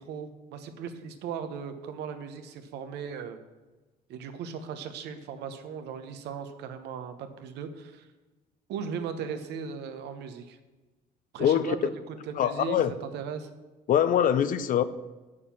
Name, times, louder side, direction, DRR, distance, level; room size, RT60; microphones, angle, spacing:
voice 1, 0.0-3.4 4.1-8.0 8.7-10.6 11.3-13.5, right 6 dB, 80° right, 8 dB, 1.1 m, -37 dB
voice 2, 11.4-11.7 12.4-12.9 13.9-14.8, left 9 dB, 55° left, 14 dB, 0.6 m, -23 dB
7.5 x 6.7 x 7.0 m, 1.2 s
cardioid pair, 110°, 17 cm